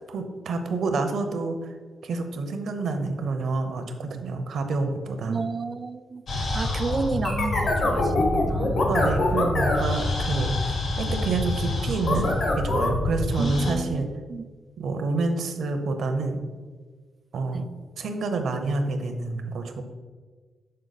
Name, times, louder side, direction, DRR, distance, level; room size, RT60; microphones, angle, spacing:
voice 1, 0.1-1.7 2.0-5.4 8.9-10.5 11.0-14.1 14.8-16.4 17.3-17.7 18.0-19.8, right 3 dB, 70° right, 6 dB, 0.7 m, -28 dB
voice 2, 5.3-8.8 13.4-14.4 17.5-17.7, right 4 dB, 35° right, 12 dB, 0.3 m, -32 dB
sound 1, 6.3-13.7, left 2 dB, 60° left, 1.4 m, -25 dB
6.5 x 4.3 x 4.1 m, 1.5 s
cardioid pair, 120°, 0 cm